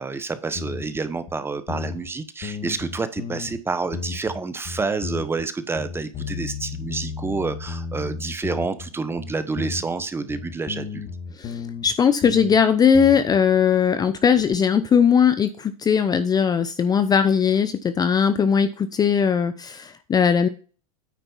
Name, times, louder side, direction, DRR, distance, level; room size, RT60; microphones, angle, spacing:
voice 1, 0.0-11.0, right 4 dB, 10° right, 12 dB, 0.9 m, -28 dB
sound 1, 0.5-1.0 1.3-1.4 1.7-2.1 2.4-3.6 3.9-4.4 4.6-5.5 5.8-8.9 9.2-11.9 12.2-12.6 12.9-13.4, left 5 dB, 35° left, 1.5 m, -33 dB
voice 2, 11.4-20.5, left 7 dB, 20° left, 12 dB, 0.6 m, -19 dB
9.4 x 4.1 x 5.5 m, 0.37 s
hypercardioid pair, 115°, 19 cm